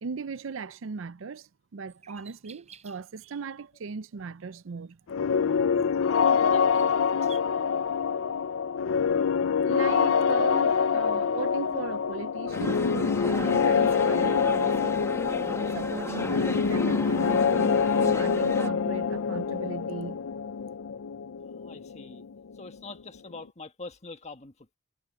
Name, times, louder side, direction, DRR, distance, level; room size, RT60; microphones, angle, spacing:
voice 1, 0.0-5.0 9.6-14.9 15.7-20.2, right 5 dB, 70° right, 0.5 m, -37 dB
sound 1, 1.9-3.3 3.8-4.1 4.7-7.4, right 8 dB, 35° right, 7.7 m, -53 dB
sound 2, 5.1-22.7, left 6 dB, 85° left, 0.5 m, -25 dB
voice 2, 6.0-7.0 21.4-22.2 22.5-24.8, left 3 dB, 35° left, 1.6 m, -44 dB
sound 3, 12.5-18.7, left 1 dB, 15° left, 1.2 m, -36 dB
head